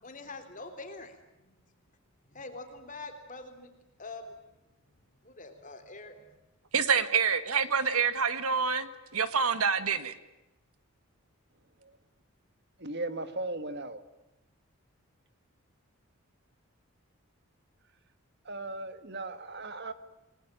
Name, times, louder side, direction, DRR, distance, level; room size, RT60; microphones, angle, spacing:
voice 1, 0.0-1.1 2.3-3.7 4.0-4.3 5.2-6.2, left 3 dB, 35° left, 6 dB, 3.4 m, -44 dB
voice 2, 6.7-10.1, right 6 dB, 80° right, 12 dB, 1.8 m, -27 dB
voice 3, 12.8-14.0 18.5-19.9, right 2 dB, 50° right, 11 dB, 1.9 m, -37 dB
28.0 x 20.5 x 9.1 m, 0.98 s
head